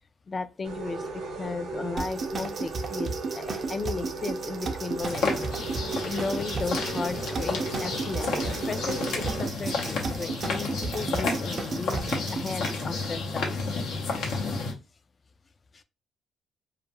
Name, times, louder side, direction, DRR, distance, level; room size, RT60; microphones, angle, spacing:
voice 1, 0.3-5.3 6.0-13.6 15.7-15.8, left 4 dB, 35° left, 0.3 m, -35 dB
sound 1, 0.6-9.5, right 3 dB, 80° right, 0.7 m, -36 dB
sound 2, 2.0-12.7, right 4 dB, 50° right, 0.4 m, -34 dB
sound 3, 5.0-14.7, left 3 dB, 85° left, 0.8 m, -31 dB
2.4 x 2.2 x 2.9 m
cardioid pair, 90°, 0 cm